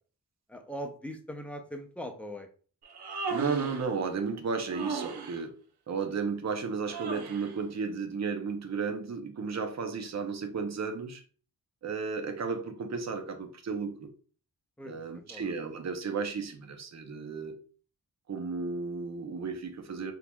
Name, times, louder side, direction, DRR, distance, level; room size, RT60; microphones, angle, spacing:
voice 1, 0.5-2.5 14.8-15.0 15.3-15.4, equal, 5° left, 0.5 m, -40 dB
Human voice, 2.8-3.9 4.7-5.4 6.9-7.6, right 4 dB, 80° right, 0.7 m, -36 dB
voice 2, 3.3-5.6 5.9-11.2 11.8-14.1 14.8-17.6 18.3-20.1, right 5 dB, 45° right, 0.6 m, -34 dB
3.7 x 3.0 x 2.2 m
wide cardioid pair, 85°, 38 cm